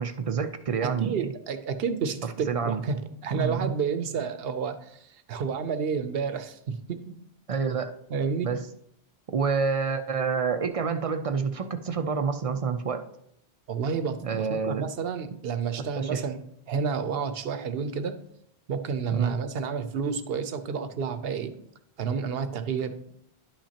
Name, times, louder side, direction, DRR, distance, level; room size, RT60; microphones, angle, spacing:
voice 1, 0.0-1.2 2.2-2.8 3.3-3.7 7.5-7.9 8.4-8.7 9.3-13.0 14.2-14.8 16.0-16.2 19.1-19.4, right 5 dB, 50° right, 9 dB, 0.4 m, -28 dB
voice 2, 0.8-7.1 8.1-8.5 13.7-16.4 16.7-18.1 18.7-21.5 22.0-23.1, right 6 dB, 70° right, 10 dB, 0.9 m, -30 dB
11.0 x 5.8 x 2.8 m, 0.72 s
omnidirectional pair, 1.0 m